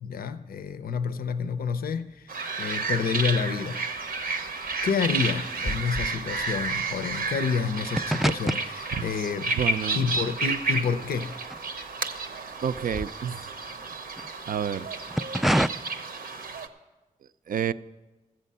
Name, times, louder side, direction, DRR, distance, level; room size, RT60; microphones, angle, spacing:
voice 1, 0.0-3.8 4.5-9.6 9.9-11.3, left 5 dB, 80° left, 0.5 m, -29 dB
sound 1, 2.3-16.7, right 3 dB, 85° right, 0.8 m, -31 dB
sound 2, 3.9-12.2 12.5-14.3 14.9-15.7, equal, ahead, 0.3 m, -31 dB
voice 2, 9.5-10.0 12.6-13.5 14.5-14.9 17.5-17.7, right 8 dB, 70° right, 0.4 m, -29 dB
14.5 x 7.5 x 5.5 m
cardioid pair, 40°, 15 cm